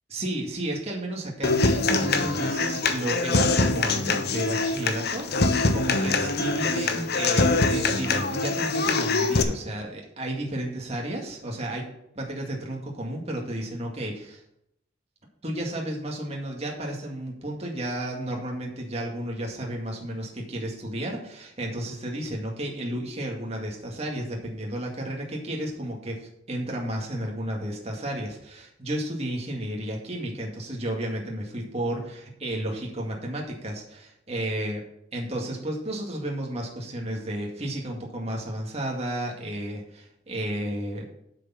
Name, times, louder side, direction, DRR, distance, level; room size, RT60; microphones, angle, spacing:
voice 1, 0.1-11.9 12.1-14.4 15.4-34.8 35.1-41.0, right 1 dB, 35° right, -1 dB, 2.1 m, -32 dB
Human voice / Acoustic guitar, 1.4-9.4, left 3 dB, 60° left, 1.0 m, -24 dB
8.2 x 6.8 x 5.7 m, 0.77 s
head